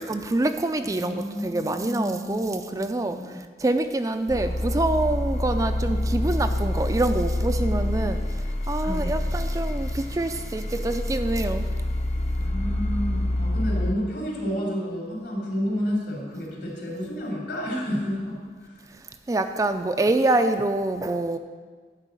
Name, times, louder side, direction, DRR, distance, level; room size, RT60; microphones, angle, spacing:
voice 1, 0.0-8.2 8.7-11.7 19.3-21.4, right 2 dB, 20° right, 8 dB, 0.3 m, -26 dB
voice 2, 0.9-3.5 8.8-9.2 12.4-18.8, equal, 75° left, -3 dB, 3.4 m, -31 dB
sound 1, 4.3-13.9, left 1 dB, 40° left, 0.6 m, -27 dB
10.5 x 4.8 x 7.3 m, 1.5 s
head